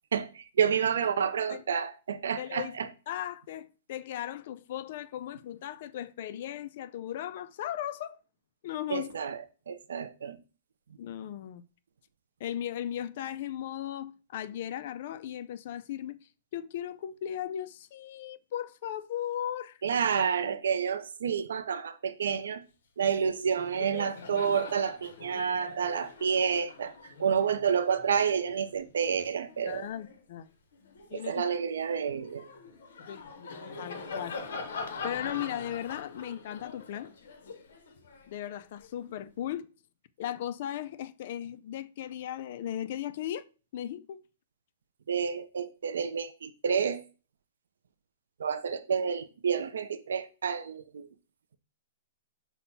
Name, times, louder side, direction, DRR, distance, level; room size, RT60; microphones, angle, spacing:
voice 1, 0.1-2.9 8.9-9.4 9.7-10.4 19.8-22.6 23.0-26.9 27.2-29.9 31.1-32.5 45.1-47.0 48.4-51.1, right 7 dB, 90° right, 0.5 m, -29 dB
voice 2, 2.4-2.8 3.1-8.2 8.6-9.1 11.0-11.6 12.4-19.8 29.7-30.5 31.1-31.4 33.1-33.2 33.8-34.4 35.0-37.1 38.3-39.7 40.2-43.5 43.7-44.2, left 11 dB, 50° left, 0.3 m, -37 dB
Laughter, 23.0-23.2 23.5-30.2 30.7-38.9, left 4 dB, 70° left, 0.8 m, -44 dB
5.9 x 2.1 x 4.0 m
hypercardioid pair, 160°, 0 cm